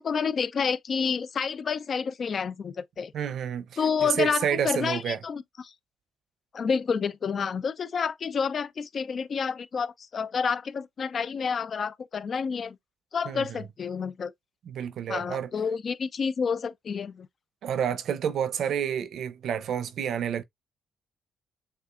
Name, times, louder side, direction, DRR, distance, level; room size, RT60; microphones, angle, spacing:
voice 1, 0.0-3.1 3.8-5.7 6.5-12.8 13.1-14.3 15.1-17.3, left 6 dB, 50° left, 0.4 m, -29 dB
voice 2, 3.1-5.2 13.3-13.6 14.7-15.5 17.6-20.4, right 8 dB, 70° right, 0.6 m, -29 dB
6.8 x 2.4 x 2.4 m
cardioid pair, 90°, 0 cm